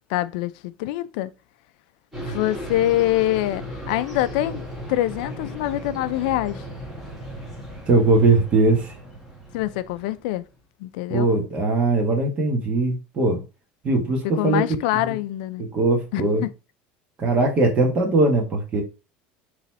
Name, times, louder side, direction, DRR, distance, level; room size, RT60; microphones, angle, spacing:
voice 1, 0.1-1.3 2.2-4.6 4.9-6.6 9.5-10.4 10.8-11.3 14.4-15.6 16.1-16.2, left 14 dB, 80° left, 0.4 m, -24 dB
sound 1, 2.1-10.4, equal, 5° right, 1.9 m, -36 dB
voice 2, 7.9-9.0 11.1-13.4 13.8-14.6 14.9-15.2 15.6-16.4 17.2-18.8, right 2 dB, 25° right, 1.4 m, -20 dB
4.1 x 3.1 x 4.1 m
cardioid pair, 165°, 5 cm